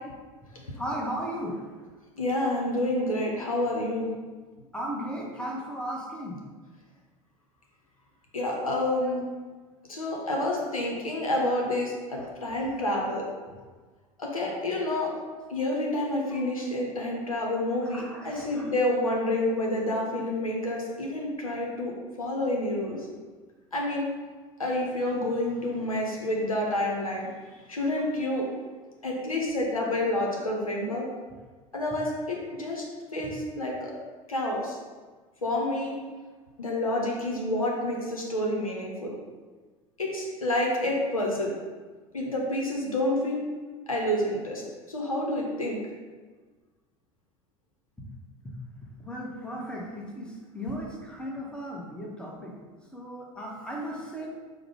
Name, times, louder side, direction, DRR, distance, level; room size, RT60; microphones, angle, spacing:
voice 1, 0.8-1.6 4.7-6.4 15.1-15.2 16.3-16.4 17.8-18.6 49.0-52.5 52.9-54.3, equal, 5° left, -3 dB, 1.0 m, -36 dB
voice 2, 2.2-4.1 8.3-9.2 9.9-13.2 14.2-15.1 15.5-21.9 22.2-23.1 23.7-24.1 24.6-27.3 27.7-28.5 29.0-31.1 31.7-32.9 33.1-33.9 34.3-34.8 35.4-35.9 36.6-39.1 40.0-41.5 42.1-43.4 43.9-45.8, left 1 dB, 80° left, -1 dB, 0.7 m, -28 dB
4.9 x 2.1 x 4.8 m, 1.4 s
figure-of-eight pair, 70°, 18 cm